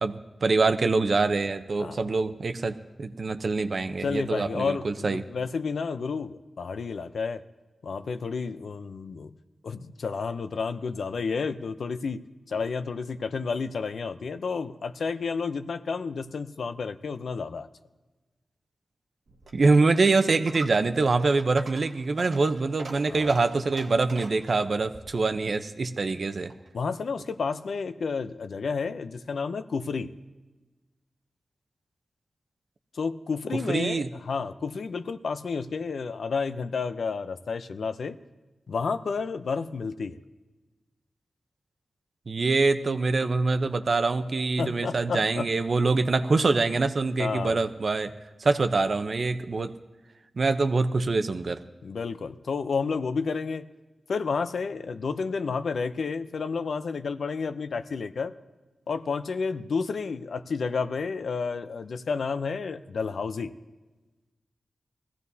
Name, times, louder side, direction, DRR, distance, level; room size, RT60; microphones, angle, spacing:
voice 1, 0.0-5.2 19.5-26.5 33.7-34.1 42.3-48.1 48.4-49.7 50.4-51.6, right 3 dB, 60° right, 9 dB, 0.7 m, -25 dB
voice 2, 4.0-7.4 7.8-9.3 9.6-17.7 23.1-23.4 26.7-30.1 32.9-38.2 38.7-40.2 44.6-45.5 47.2-47.6 51.8-53.7 54.1-58.3 58.9-63.5, left 5 dB, 80° left, 11 dB, 0.5 m, -31 dB
Coin (dropping), 19.3-26.8, right 3 dB, 75° right, 1.2 m, -45 dB
20.5 x 15.0 x 2.7 m, 1.2 s
cardioid pair, 65°, 0 cm